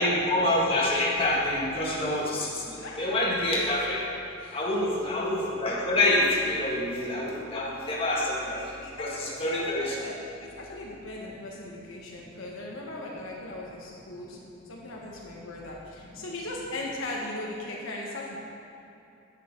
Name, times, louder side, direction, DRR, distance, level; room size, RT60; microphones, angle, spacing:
voice 1, 0.0-4.0 4.5-8.6 9.0-10.0, left 1 dB, 30° left, -6 dB, 1.9 m, -26 dB
voice 2, 8.5-9.0 9.6-14.4 14.7-18.4, left 2 dB, 70° left, -3 dB, 1.3 m, -38 dB
10.5 x 8.2 x 4.5 m, 2.9 s
head